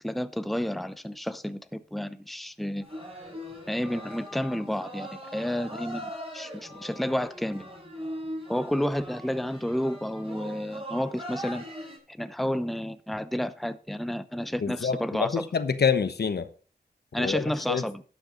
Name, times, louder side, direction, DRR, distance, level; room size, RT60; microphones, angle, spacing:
voice 1, 0.0-2.8 3.7-7.7 8.5-11.6 12.1-15.5 17.1-18.0, equal, ahead, 0.7 m, -31 dB
sound 1, 2.8-12.0, equal, 35° right, 6.0 m, -41 dB
voice 2, 14.6-16.5 17.2-17.8, left 6 dB, 75° left, 1.0 m, -27 dB
12.0 x 6.9 x 5.2 m
cardioid pair, 50°, 17 cm